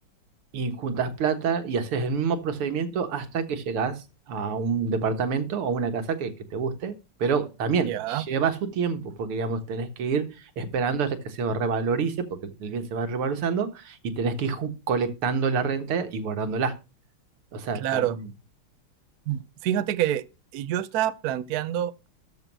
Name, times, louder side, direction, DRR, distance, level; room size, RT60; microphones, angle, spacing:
voice 1, 0.5-4.0 4.3-6.9 7.2-10.3 10.6-16.7 17.5-18.3, right 5 dB, 85° right, 2.4 m, -27 dB
voice 2, 7.9-8.3 17.7-18.2 19.3-20.2 20.5-22.1, right 11 dB, 65° right, 0.9 m, -27 dB
13.5 x 5.1 x 6.1 m
omnidirectional pair, 2.4 m